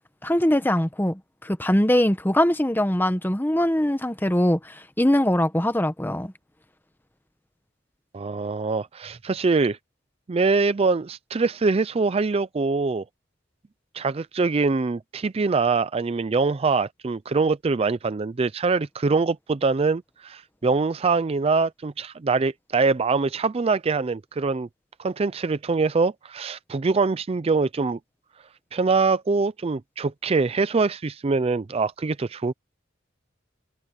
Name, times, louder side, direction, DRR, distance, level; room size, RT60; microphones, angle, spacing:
voice 1, 0.2-6.3, left 1 dB, 10° left, 1.1 m, -22 dB
voice 2, 8.1-9.8 10.3-13.0 13.9-24.7 25.0-28.0 28.7-32.5, right 4 dB, 30° right, 0.4 m, -23 dB
head